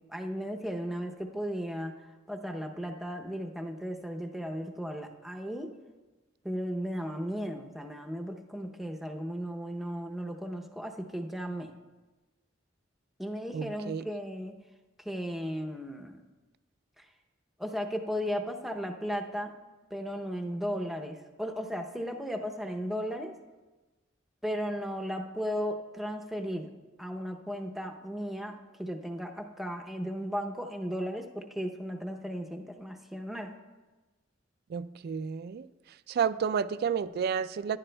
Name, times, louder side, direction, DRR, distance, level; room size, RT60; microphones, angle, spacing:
voice 1, 0.1-1.9 2.3-5.7 6.4-11.7 13.2-14.5 15.0-16.2 17.0-17.1 17.6-19.5 19.9-23.4 24.4-26.7 27.0-33.5, equal, ahead, 2 dB, 0.6 m, -35 dB
voice 2, 13.5-14.1 34.7-35.7 36.1-37.8, right 7 dB, 55° right, 15 dB, 0.3 m, -31 dB
14.0 x 10.5 x 2.2 m, 1.2 s
head